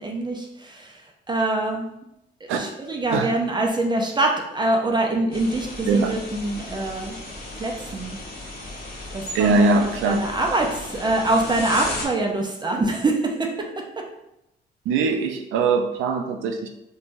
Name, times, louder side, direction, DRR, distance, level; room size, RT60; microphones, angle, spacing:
voice 1, 0.0-1.9 2.4-7.2 7.5-8.2 9.1-14.1, right 2 dB, 20° right, 1 dB, 0.4 m, -25 dB
sound 1, 5.3-12.1, left 2 dB, 50° left, 0.8 m, -35 dB
voice 2, 9.3-10.2 14.9-16.7, right 4 dB, 85° right, 4 dB, 0.4 m, -21 dB
3.1 x 2.2 x 2.5 m, 0.85 s
cardioid pair, 90°, 20 cm